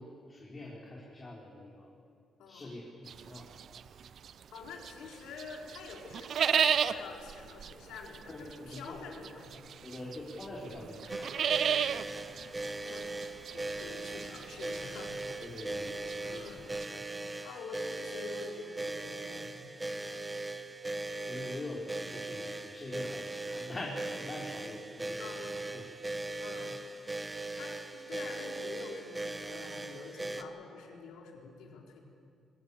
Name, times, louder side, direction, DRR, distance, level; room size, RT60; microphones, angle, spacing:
voice 1, 0.0-1.9 2.5-3.5 8.3-9.0 9.8-11.7 15.4-16.5 16.9-17.2 21.3-26.0 26.6-26.7, left 1 dB, 30° left, -4 dB, 4.3 m, -44 dB
voice 2, 2.4-2.7 4.5-9.7 12.1-12.6 12.9-15.2 16.2-16.7 17.1-19.5 25.2-25.7 26.4-26.9 27.2-32.0, left 4 dB, 85° left, 0 dB, 4.0 m, -47 dB
sound 1, 3.1-5.1 5.4-16.9, right 8 dB, 60° right, 0.7 m, -33 dB
sound 2, 11.1-30.4, right 2 dB, 15° right, 1.4 m, -39 dB
24.5 x 19.5 x 7.1 m, 2.3 s
cardioid pair, 90°, 0 cm